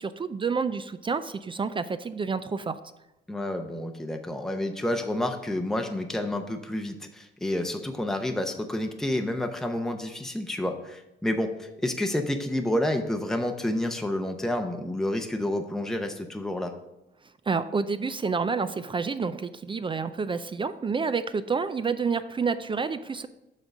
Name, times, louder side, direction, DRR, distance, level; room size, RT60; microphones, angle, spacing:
voice 1, 0.0-2.8 17.5-23.3, right 5 dB, 25° right, 12 dB, 0.4 m, -29 dB
voice 2, 3.3-16.7, left 1 dB, ahead, 5 dB, 0.7 m, -29 dB
7.2 x 3.8 x 6.5 m, 0.93 s
cardioid pair, 90°, 20 cm